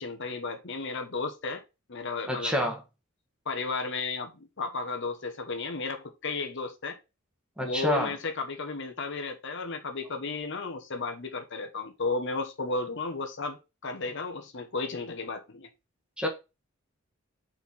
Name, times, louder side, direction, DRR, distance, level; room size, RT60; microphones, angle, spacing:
voice 1, 0.0-1.6 1.9-2.5 3.5-7.0 7.6-15.7, left 3 dB, 55° left, 1.1 m, -33 dB
voice 2, 2.3-2.8 7.6-8.1 16.2-16.3, equal, 5° right, 1.3 m, -28 dB
4.5 x 4.5 x 5.4 m
head